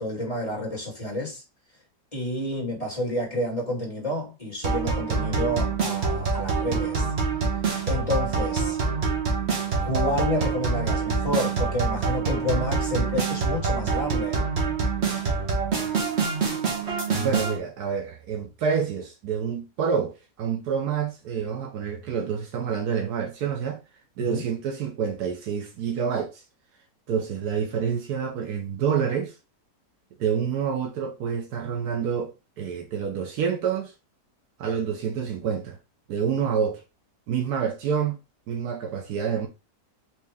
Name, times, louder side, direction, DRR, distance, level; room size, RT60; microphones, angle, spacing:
voice 1, 0.0-1.4 2.1-7.1 7.9-8.8 9.8-14.4 24.2-24.4, left 1 dB, 20° left, 2.0 m, -29 dB
sound 1, 4.6-17.6, right 4 dB, 45° right, 1.2 m, -26 dB
voice 2, 17.1-23.8 24.2-26.4 27.1-29.3 30.2-33.9 34.6-35.8 36.1-36.8 37.3-38.2 38.5-39.5, right 7 dB, 70° right, 1.2 m, -28 dB
4.5 x 2.9 x 3.4 m
omnidirectional pair, 1.8 m